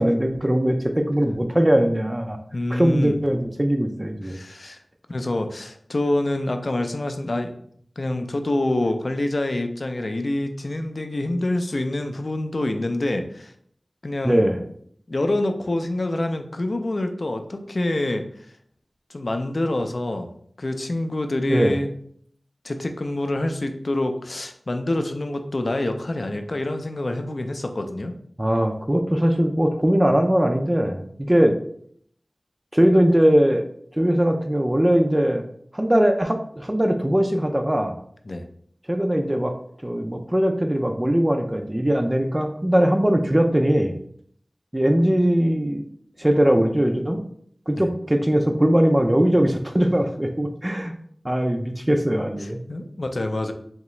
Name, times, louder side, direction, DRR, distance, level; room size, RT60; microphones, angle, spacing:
voice 1, 0.0-2.4 2.7-4.4 14.2-14.6 21.5-21.8 28.4-31.5 32.7-33.6 34.0-35.5 35.7-37.9 38.9-39.5 39.8-43.9 44.7-45.9 46.2-47.2 47.7-50.9 51.2-52.6, equal, 20° right, 4 dB, 0.4 m, -20 dB
voice 2, 2.5-3.2 4.2-4.8 5.1-7.5 8.0-13.5 14.0-14.5 15.1-18.2 19.1-20.3 20.6-21.9 22.6-28.1 38.3-38.4 47.8-47.9 52.4-53.5, left 1 dB, 55° left, 6 dB, 0.4 m, -26 dB
3.5 x 2.9 x 3.1 m, 0.64 s
wide cardioid pair, 60°, 0 cm